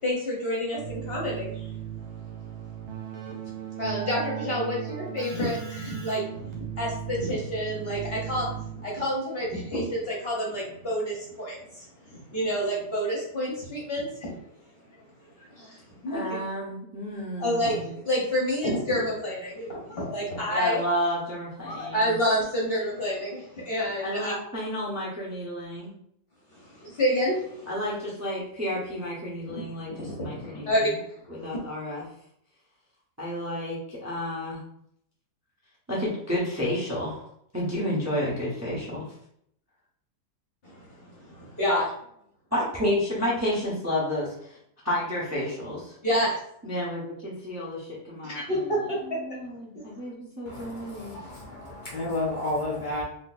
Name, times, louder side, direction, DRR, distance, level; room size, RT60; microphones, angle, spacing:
voice 1, 0.0-1.7 3.8-14.4 14.9-15.0 15.4-16.4 17.4-20.8 21.7-24.3 26.5-27.7 29.5-31.6 40.6-41.9 46.0-46.4 48.2-49.2 49.7-49.9, equal, 45° left, -4 dB, 0.9 m, -29 dB
Keyboard (musical), 0.8-9.1, right 10 dB, 80° right, 1.2 m, -37 dB
voice 2, 16.1-17.9 20.5-22.2 24.0-25.9 27.7-30.7 31.3-32.0 33.2-34.6 35.9-37.3 37.5-39.0 42.5-44.6 44.8-46.0 46.6-48.7 49.0-51.2, left 1 dB, 20° right, -6 dB, 0.4 m, -31 dB
voice 3, 50.5-53.0, left 1 dB, 80° left, -5 dB, 0.4 m, -31 dB
3.8 x 2.6 x 2.5 m, 0.72 s
omnidirectional pair, 1.7 m